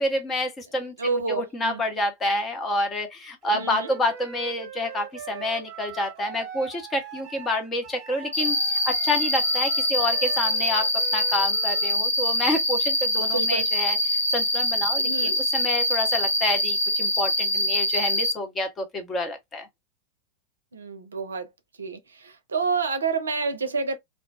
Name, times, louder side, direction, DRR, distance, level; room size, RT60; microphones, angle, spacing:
voice 1, 0.0-14.0 14.3-19.7, left 1 dB, 20° left, 0.8 m, -28 dB
voice 2, 1.0-1.8 3.5-3.9 13.2-13.7 15.0-15.4 20.7-21.5 21.8-24.0, right 4 dB, 70° right, 0.5 m, -29 dB
Wind instrument woodwind instrument, 3.4-12.0, right 8 dB, 40° right, 0.8 m, -41 dB
Cricket, 8.3-18.3, left 1 dB, 70° left, 1.0 m, -24 dB
2.4 x 2.2 x 2.3 m
figure-of-eight pair, 90°, 0 cm